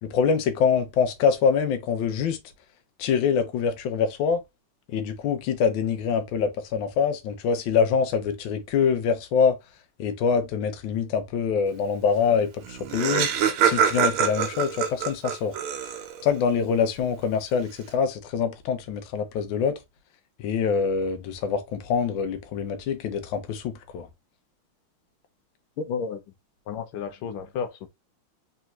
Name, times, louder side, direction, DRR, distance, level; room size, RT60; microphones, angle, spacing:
voice 1, 0.0-2.4 3.0-4.4 4.9-9.6 10.0-13.3 13.6-15.5 16.2-19.8 20.4-24.1, left 6 dB, 70° left, 1.4 m, -25 dB
Laughter, 12.4-12.5 12.6-16.3, right 8 dB, 90° right, 1.6 m, -25 dB
voice 2, 25.9-26.2 26.7-27.9, left 6 dB, 90° left, 1.6 m, -32 dB
3.8 x 3.4 x 2.9 m
omnidirectional pair, 2.2 m